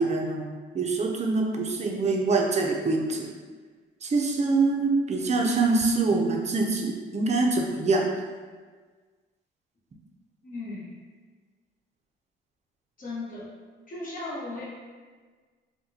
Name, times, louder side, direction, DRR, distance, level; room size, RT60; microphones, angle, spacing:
voice 1, 0.0-3.3 4.0-8.0, right 3 dB, 35° right, 0 dB, 0.5 m, -25 dB
voice 2, 10.4-11.0 13.0-13.5 13.9-14.7, left 2 dB, 45° left, -5 dB, 1.1 m, -36 dB
3.8 x 2.2 x 2.8 m, 1.4 s
cardioid pair, 90°, 20 cm